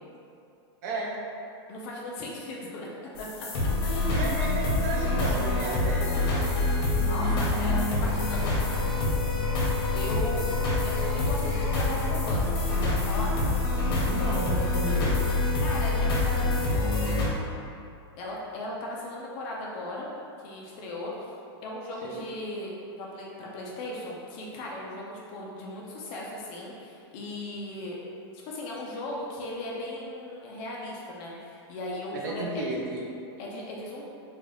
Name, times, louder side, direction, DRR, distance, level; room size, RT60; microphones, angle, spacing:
voice 1, 0.8-1.2 4.1-6.9 10.1-10.3 14.0-15.1 22.0-22.2 32.1-33.1, right 2 dB, 40° right, -2 dB, 0.5 m, -33 dB
voice 2, 1.7-2.9 3.2-3.5 3.8-4.2 7.0-8.8 9.9-12.5 12.8-13.3 15.6-17.1 18.2-20.1 20.4-21.3 21.6-22.7 23.0-28.0 28.5-32.6 33.4-34.0, left 1 dB, 30° left, -3 dB, 0.4 m, -37 dB
sound 1, 3.2-17.3, left 2 dB, 60° left, 0.8 m, -26 dB
3.7 x 2.3 x 3.2 m, 2.6 s
supercardioid pair, 180°, 13 cm